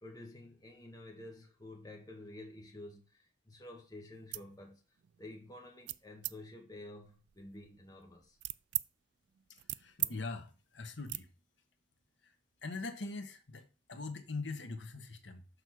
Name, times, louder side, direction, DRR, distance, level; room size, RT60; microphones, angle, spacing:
voice 1, 0.0-4.8 5.2-8.4, left 1 dB, 20° left, 1.5 m, -50 dB
sound 1, 4.2-4.5 5.0-5.3 5.9-6.4 7.0-8.9 9.3-10.2 10.4-10.6 11.1-11.2, right 18 dB, 65° right, 0.3 m, -40 dB
voice 2, 9.5-11.3 12.2-12.3 12.6-15.5, left 3 dB, 85° left, 1.3 m, -42 dB
6.5 x 4.7 x 6.4 m
head